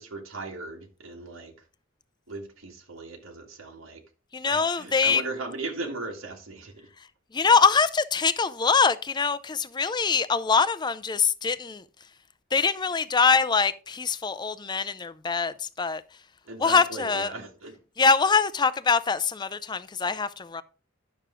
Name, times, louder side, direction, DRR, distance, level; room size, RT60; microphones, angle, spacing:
voice 1, 0.0-1.5 2.3-4.0 4.5-6.9 16.5-17.8, right 3 dB, 90° right, 1.7 m, -37 dB
voice 2, 4.3-5.2 7.3-11.8 12.5-16.0 16.6-17.3 18.0-20.6, left 5 dB, 20° left, 0.5 m, -23 dB
10.0 x 6.7 x 3.7 m
head